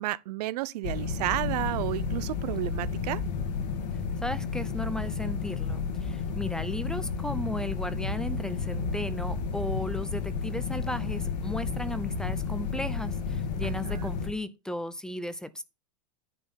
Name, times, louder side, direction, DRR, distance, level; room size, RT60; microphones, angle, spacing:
voice 1, 0.0-3.2 13.6-14.1, right 17 dB, 70° right, 0.5 m, -32 dB
sound 1, 0.8-14.3, left 5 dB, 80° left, 2.0 m, -32 dB
voice 2, 4.2-15.6, left 1 dB, 5° left, 0.5 m, -35 dB
10.0 x 4.3 x 5.6 m
supercardioid pair, 135°, 21 cm